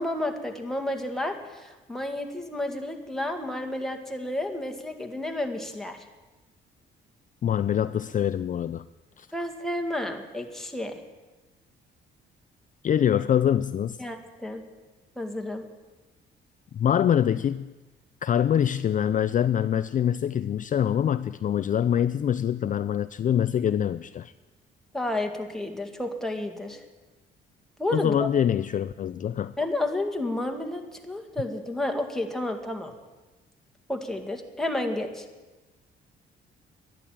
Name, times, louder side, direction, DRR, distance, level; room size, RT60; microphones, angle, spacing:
voice 1, 0.0-6.1 9.3-11.0 14.0-14.6 15.2-15.6 24.9-26.8 27.8-28.3 29.6-32.9 33.9-35.3, left 1 dB, ahead, 3 dB, 2.0 m, -31 dB
voice 2, 7.4-8.8 9.2-9.3 12.8-14.0 16.7-17.7 18.2-24.3 27.9-29.5, left 9 dB, 40° left, 13 dB, 0.4 m, -24 dB
11.5 x 11.0 x 9.0 m, 1.2 s
cardioid pair, 90°, 20 cm